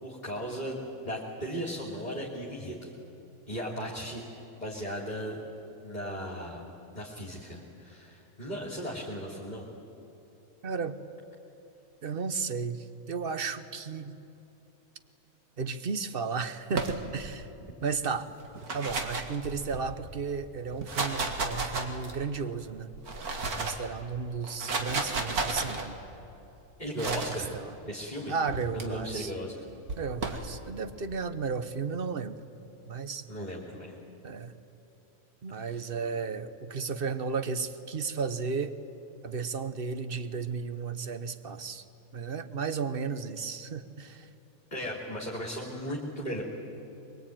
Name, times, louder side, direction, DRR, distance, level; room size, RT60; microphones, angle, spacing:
voice 1, 0.0-2.9 3.5-5.4 5.8-6.7 6.9-9.6 26.8-27.5 27.8-28.3 28.7-29.5 33.3-33.9 35.6-35.8 44.7-46.4, equal, 30° left, -2 dB, 2.9 m, -37 dB
voice 2, 10.6-11.0 12.0-14.1 15.6-17.5 17.8-18.3 18.7-22.9 23.6-26.0 26.9-27.7 28.3-29.3 30.0-32.4 32.9-33.3 34.2-34.5 35.4-38.7 39.2-41.8 42.1-44.3, right 5 dB, 45° right, 11 dB, 1.1 m, -34 dB
sound 1, 16.7-17.4 18.4-19.9 20.7-22.3 22.9-23.9 24.4-25.8 27.0-27.4 28.5-28.8 29.9-30.5, right 3 dB, 85° right, 2.4 m, -33 dB
23.0 x 23.0 x 9.1 m, 2.9 s
omnidirectional pair, 1.5 m